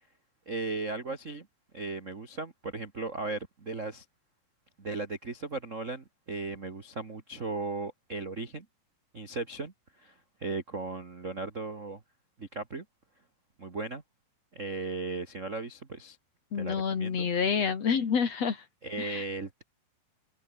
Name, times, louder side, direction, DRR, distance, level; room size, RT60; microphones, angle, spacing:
voice 1, 0.4-1.5 1.7-4.0 4.8-8.6 9.1-9.7 10.0-10.1 10.4-12.0 12.4-12.8 13.6-14.0 14.5-16.2 16.6-17.3 18.8-19.6, right 3 dB, 35° right, 1.3 m, -36 dB
voice 2, 16.5-18.6 19.0-19.2, left 6 dB, 50° left, 3.4 m, -28 dB
open air
omnidirectional pair, 4.2 m